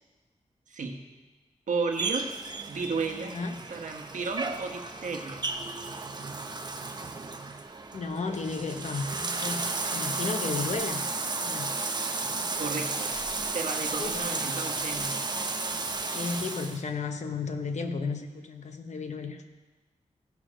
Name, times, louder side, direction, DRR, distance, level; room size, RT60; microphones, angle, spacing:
voice 1, 0.7-1.0 1.7-2.3 2.7-3.4 3.7-5.4 12.5-15.2, right 4 dB, 85° right, 3 dB, 1.2 m, -33 dB
Bathtub (filling or washing), 1.9-16.8, right 3 dB, 35° right, 0.7 m, -33 dB
voice 2, 3.3-3.6 7.9-11.1 11.4-11.7 14.0-14.6 16.0-19.4, left 4 dB, 65° left, 6 dB, 0.9 m, -34 dB
16.0 x 6.5 x 5.1 m, 1.2 s
wide cardioid pair, 125°, 13 cm